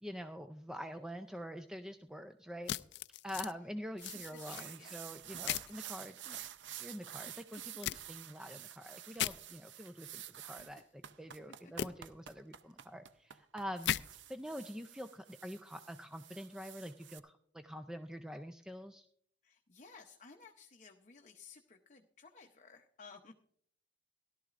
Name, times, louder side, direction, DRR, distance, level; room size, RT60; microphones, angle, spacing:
voice 1, 0.0-2.7 3.2-6.4 6.8-13.9 14.3-19.1, equal, 5° right, 7 dB, 0.4 m, -46 dB
sound 1, 2.7-3.5 4.0-4.6 5.5-5.7 7.8-8.0 9.1-9.3 11.8-11.9 13.8-14.0, left 11 dB, 70° left, 0.3 m, -36 dB
sound 2, 4.0-17.2, right 11 dB, 85° right, 0.6 m, -50 dB
voice 2, 4.1-5.2 7.2-7.3 10.8-10.9 11.6-11.7 19.4-23.3, left 4 dB, 40° left, 3 dB, 0.7 m, -57 dB
17.5 x 12.0 x 2.5 m, 0.64 s
head